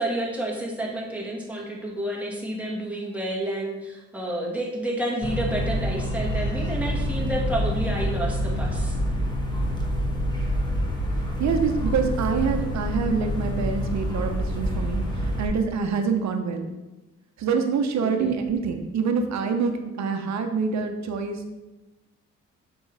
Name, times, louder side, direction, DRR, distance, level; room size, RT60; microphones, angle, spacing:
voice 1, 0.0-8.9 18.0-18.3, right 1 dB, 5° right, -2 dB, 1.9 m, -30 dB
sound 1, 5.2-15.5, equal, 15° left, 1.3 m, -27 dB
voice 2, 11.4-16.7 17.4-21.4, right 5 dB, 65° right, 6 dB, 1.0 m, -26 dB
7.0 x 5.5 x 3.4 m, 1.1 s
cardioid pair, 90°, 30 cm